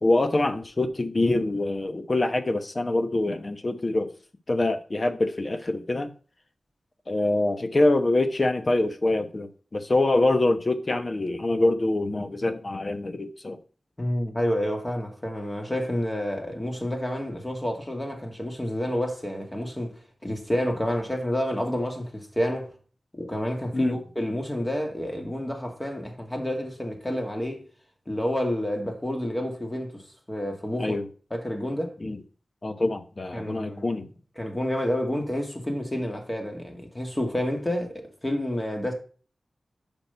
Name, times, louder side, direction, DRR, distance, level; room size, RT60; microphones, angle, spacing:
voice 1, 0.0-4.1 4.5-6.1 7.1-13.6 23.7-24.0 30.8-31.0 32.0-32.2 32.6-34.0, left 2 dB, 45° left, 1.0 m, -25 dB
voice 2, 14.0-22.7 23.1-27.6 28.1-31.0 31.3-31.9 33.3-34.0 34.4-38.9, left 1 dB, 20° left, 2.2 m, -29 dB
5.9 x 5.4 x 5.6 m
cardioid pair, 50°, 0 cm